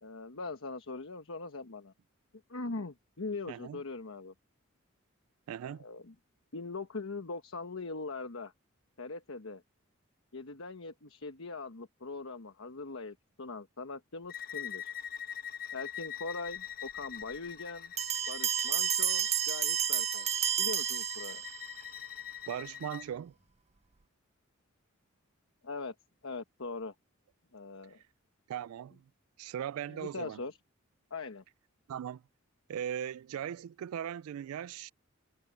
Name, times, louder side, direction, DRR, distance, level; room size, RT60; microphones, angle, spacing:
voice 1, 0.0-1.9 2.5-4.3 5.6-6.1 6.5-8.5 9.0-9.6 10.3-14.8 15.7-17.9 18.3-20.3 20.6-21.4 25.6-25.9 26.2-26.9 27.5-28.0 29.9-30.6 31.1-31.4, left 3 dB, 70° left, 1.2 m, -41 dB
voice 2, 3.5-3.8 5.5-5.8 22.5-23.3 28.5-29.0 29.4-30.4 31.9-32.2 32.7-34.9, right 9 dB, 85° right, 0.3 m, -38 dB
Bowed string instrument, 14.3-23.1, left 9 dB, 45° left, 1.2 m, -43 dB
Bell, 18.0-21.7, right 9 dB, 30° right, 0.5 m, -31 dB
head